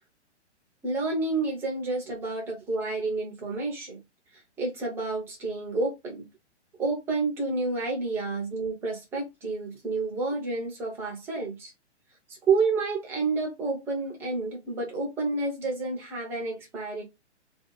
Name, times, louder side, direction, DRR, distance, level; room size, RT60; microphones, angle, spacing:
voice 1, 0.8-4.0 4.6-6.3 6.8-11.7 12.5-17.0, right 3 dB, 5° right, 0.4 m, -29 dB
2.6 x 2.3 x 3.8 m
hypercardioid pair, 130°, 35 cm